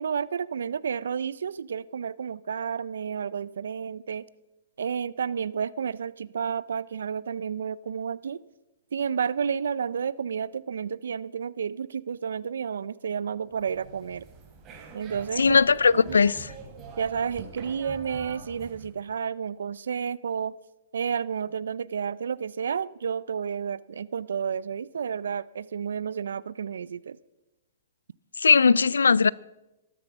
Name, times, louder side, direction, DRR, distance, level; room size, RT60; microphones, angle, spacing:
voice 1, 0.0-4.2 4.8-8.4 8.9-14.3 14.9-15.4 15.9-16.2 17.0-20.5 20.9-27.2, right 7 dB, 75° right, 0.4 m, -31 dB
sound 1, 13.5-18.9, right 4 dB, 30° right, 3.5 m, -45 dB
voice 2, 15.4-16.5 28.4-29.3, left 5 dB, 90° left, 0.4 m, -19 dB
13.0 x 12.5 x 6.0 m
hypercardioid pair, 125°, 0 cm